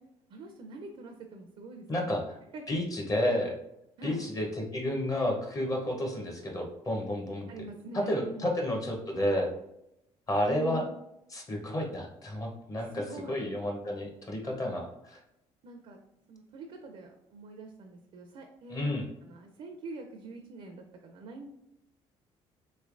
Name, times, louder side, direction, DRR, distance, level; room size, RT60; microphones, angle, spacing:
voice 1, 0.3-2.1 2.5-2.8 4.0-4.2 7.5-8.5 10.5-10.8 12.9-13.4 15.6-16.0 16.3-21.5, right 2 dB, 60° right, 3 dB, 0.5 m, -45 dB
voice 2, 1.9-2.3 2.7-3.6 4.0-7.5 7.9-9.5 10.3-10.8 11.3-15.2 18.7-19.1, left 1 dB, 30° left, 2 dB, 0.7 m, -31 dB
3.2 x 3.0 x 2.5 m, 0.84 s
cardioid pair, 95°, 12 cm